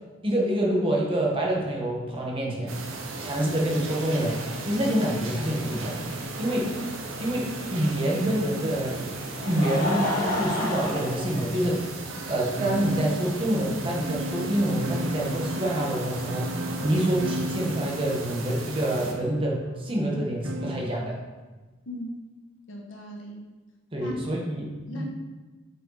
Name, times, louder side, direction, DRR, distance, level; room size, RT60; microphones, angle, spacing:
voice 1, 0.2-2.8 3.2-6.1 6.4-6.9 7.2-9.2 9.4-11.9 12.3-21.2 23.9-25.0, right 1 dB, 25° right, -2 dB, 1.6 m, -27 dB
sound 1, 2.7-19.1, right 2 dB, 90° right, 1.1 m, -36 dB
Laughter, 8.9-12.1 12.9-13.0 14.5-14.6, left 1 dB, 45° left, 2.0 m, -30 dB
sound 2, 12.6-21.0, equal, 70° right, 0.7 m, -36 dB
voice 2, 22.7-23.4 24.0-24.2 24.9-25.0, equal, 75° left, -1 dB, 1.6 m, -37 dB
9.0 x 5.6 x 4.2 m, 1.3 s
head